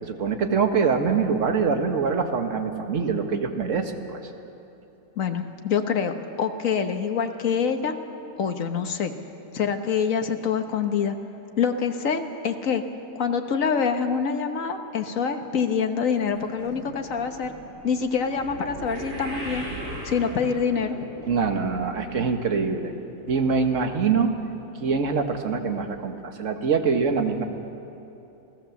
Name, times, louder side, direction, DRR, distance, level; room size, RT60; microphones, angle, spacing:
voice 1, 0.0-4.2 21.3-22.9 23.3-24.3 24.8-27.4, right 5 dB, 45° right, 5 dB, 1.7 m, -24 dB
voice 2, 5.2-7.9 8.4-9.1 9.5-11.1 11.6-12.8 13.1-17.5 17.8-19.6 20.0-21.0, left 6 dB, 50° left, 6 dB, 1.5 m, -25 dB
sound 1, 16.2-22.6 22.8-23.3 23.9-24.0 24.3-24.4, right 1 dB, 70° right, 4.4 m, -39 dB
28.5 x 17.0 x 7.2 m, 2.9 s
omnidirectional pair, 1.9 m